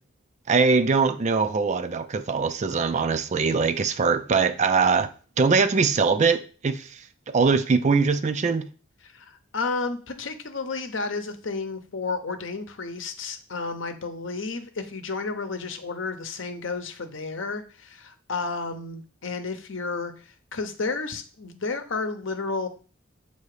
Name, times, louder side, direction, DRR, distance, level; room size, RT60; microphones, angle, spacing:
voice 1, 0.5-5.1 5.4-7.0 7.3-8.7, right 4 dB, 35° right, 0.4 m, -22 dB
voice 2, 9.0-22.7, left 4 dB, 65° left, 0.8 m, -32 dB
7.7 x 2.7 x 4.8 m
head